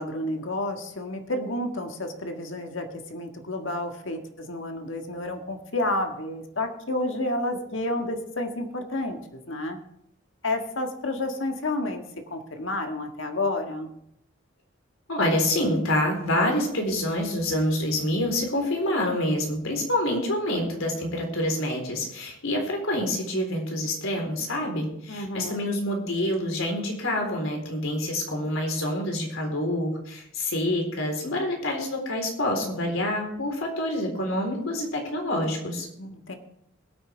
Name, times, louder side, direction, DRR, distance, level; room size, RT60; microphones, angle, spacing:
voice 1, 0.0-9.8 10.4-12.0 12.3-13.9 25.1-25.6 36.0-36.4, left 2 dB, 70° left, 4 dB, 1.7 m, -30 dB
voice 2, 15.1-35.9, left 1 dB, 90° left, 2 dB, 3.9 m, -27 dB
21.0 x 8.9 x 3.4 m, 0.76 s
head